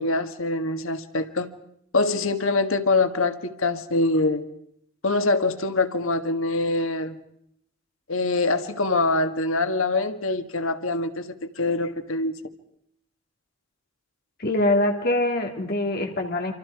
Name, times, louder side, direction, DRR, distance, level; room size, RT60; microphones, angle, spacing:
voice 1, 0.0-1.5 1.9-4.5 5.0-7.2 8.1-12.4, left 2 dB, 85° left, 8 dB, 1.7 m, -24 dB
voice 2, 14.4-16.5, left 1 dB, 50° left, 2 dB, 2.5 m, -23 dB
28.0 x 26.5 x 4.8 m, 0.72 s
head